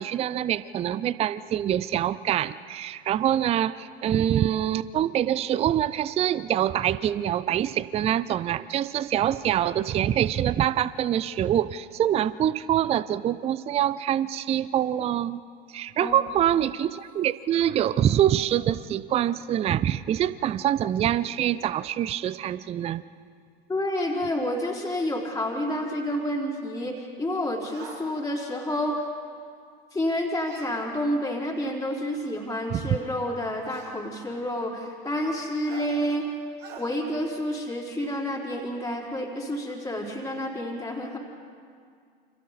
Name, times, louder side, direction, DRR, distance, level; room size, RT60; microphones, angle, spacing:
voice 1, 0.0-15.4 15.7-23.0 32.7-33.0, right 11 dB, 20° right, 17 dB, 0.5 m, -25 dB
voice 2, 23.7-29.0 29.9-36.3 36.8-41.2, left 1 dB, 10° left, -5 dB, 4.0 m, -29 dB
Extreme Pain Shout, 27.7-28.0 30.5-30.7 32.0-32.1 33.7-33.9 35.7-35.9 36.6-36.8, right 6 dB, 35° right, 6.2 m, -43 dB
29.5 x 27.0 x 4.2 m, 2.2 s
figure-of-eight pair, 80°, 29 cm